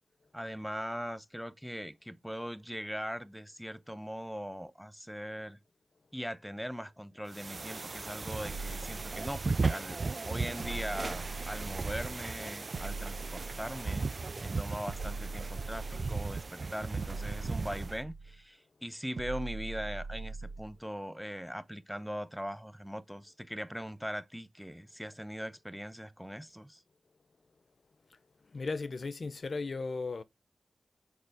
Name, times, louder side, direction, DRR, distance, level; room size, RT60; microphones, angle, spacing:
voice 1, 0.3-5.6 6.1-26.8, equal, ahead, 0.8 m, -40 dB
sound 1, 7.3-18.0, right 4 dB, 50° right, 0.3 m, -36 dB
sound 2, 8.4-9.8 10.6-12.2 12.7-14.1 14.9-16.5 17.0-18.4 19.2-20.8, right 3 dB, 75° right, 0.7 m, -41 dB
voice 2, 28.5-30.2, left 3 dB, 60° left, 0.7 m, -36 dB
6.6 x 4.4 x 3.4 m
cardioid pair, 60°, 0 cm